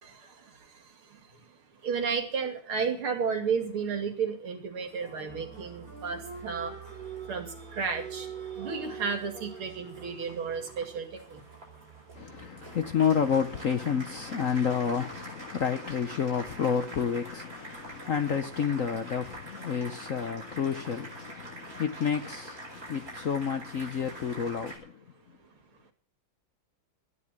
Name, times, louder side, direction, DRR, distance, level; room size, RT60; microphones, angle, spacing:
voice 1, 0.0-6.8 7.3-8.3 8.6-11.4, right 6 dB, 85° right, 3.2 m, -33 dB
Applause, 4.8-24.8, right 3 dB, 40° right, 5.3 m, -44 dB
voice 2, 12.1-24.9, left 7 dB, 55° left, 0.9 m, -30 dB
14.0 x 9.8 x 7.3 m
omnidirectional pair, 2.3 m